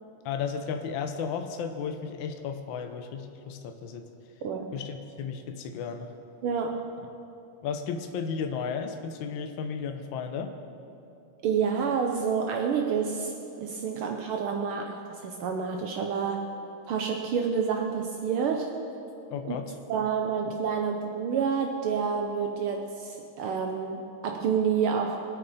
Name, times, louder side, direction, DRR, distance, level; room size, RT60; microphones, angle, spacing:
voice 1, 0.2-4.1 4.7-6.1 7.6-10.5 19.3-19.7, left 6 dB, 65° left, 5 dB, 1.2 m, -34 dB
voice 2, 4.4-4.8 6.4-6.9 11.4-16.5 16.9-18.7 19.5-19.6 19.9-25.2, right 6 dB, 80° right, 3 dB, 1.2 m, -29 dB
24.5 x 8.8 x 4.2 m, 2.8 s
omnidirectional pair, 3.4 m